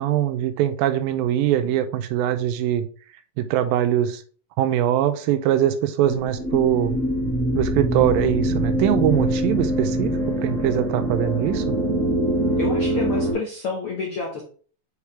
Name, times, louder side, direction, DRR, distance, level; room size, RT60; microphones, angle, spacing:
voice 1, 0.0-2.8 3.4-4.2 4.6-7.0 7.6-10.1 10.4-11.8, right 11 dB, 90° right, 10 dB, 2.4 m, -22 dB
sound 1, 6.1-13.3, right 1 dB, 30° right, 1.6 m, -24 dB
voice 2, 12.6-14.4, left 4 dB, 70° left, -1 dB, 1.3 m, -29 dB
6.8 x 4.9 x 3.3 m, 0.42 s
omnidirectional pair, 4.0 m